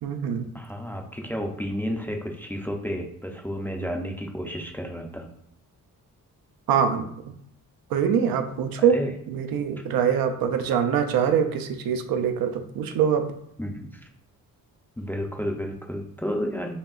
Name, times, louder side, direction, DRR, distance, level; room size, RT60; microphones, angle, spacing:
voice 1, 0.0-0.5 6.7-7.3 7.9-9.0 9.3-13.3, right 7 dB, 75° right, 7 dB, 0.5 m, -24 dB
voice 2, 0.5-5.3 8.8-9.1 13.6-14.0 15.0-16.8, equal, 5° left, 2 dB, 0.4 m, -31 dB
4.9 x 2.8 x 2.4 m, 0.72 s
cardioid pair, 95°, 36 cm